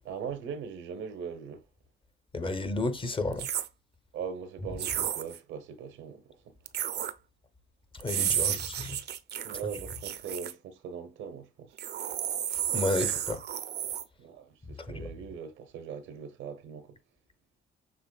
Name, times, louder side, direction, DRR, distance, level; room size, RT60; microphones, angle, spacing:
voice 1, 0.0-1.6 4.1-6.6 8.3-8.6 9.4-11.7 14.2-17.0, right 6 dB, 90° right, 0.9 m, -40 dB
voice 2, 2.3-3.5 7.9-9.0 12.7-13.4 14.8-15.1, left 2 dB, 25° left, 0.8 m, -32 dB
sound 1, 3.3-3.7 4.8-5.4 6.7-7.1 8.0-10.5 11.8-14.0, right 10 dB, 55° right, 0.6 m, -32 dB
6.7 x 3.0 x 2.3 m
cardioid pair, 90°, 20 cm